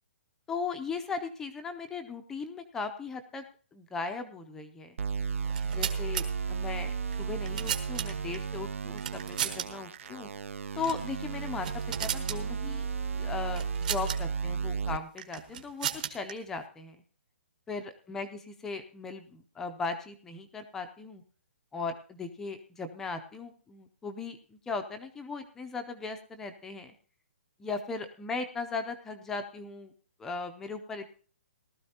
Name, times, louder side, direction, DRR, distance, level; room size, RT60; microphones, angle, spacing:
voice 1, 0.5-3.4 3.7-5.0 5.6-6.9 7.2-10.3 10.8-12.8 13.2-17.0 17.7-21.2 21.7-26.9 27.6-29.9 30.2-31.1, left 4 dB, 5° left, 6 dB, 0.5 m, -38 dB
sound 1, 5.0-15.0, right 6 dB, 75° right, 0.5 m, -34 dB
sound 2, 5.4-6.2 7.1-8.4 9.0-9.7 9.9-10.1 10.8-11.1 11.4-12.4 13.6-14.2 15.2-16.3, right 9 dB, 40° right, 1.2 m, -35 dB
18.5 x 13.0 x 2.8 m, 0.42 s
hypercardioid pair, 170°, 7 cm